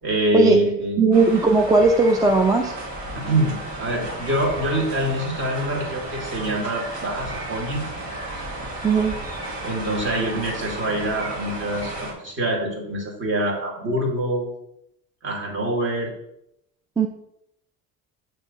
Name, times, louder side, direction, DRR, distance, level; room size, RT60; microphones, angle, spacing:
voice 1, 0.0-1.0 3.1-7.9 9.6-14.5 15.2-16.1, right 1 dB, 35° right, 0 dB, 2.0 m, -25 dB
voice 2, 1.0-2.7 8.8-9.1 17.0-17.1, right 3 dB, 10° right, 3 dB, 0.4 m, -17 dB
sound 1, 1.1-12.1, right 1 dB, 55° right, 1.8 m, -33 dB
6.3 x 3.3 x 5.4 m, 0.79 s
cardioid pair, 120°, 34 cm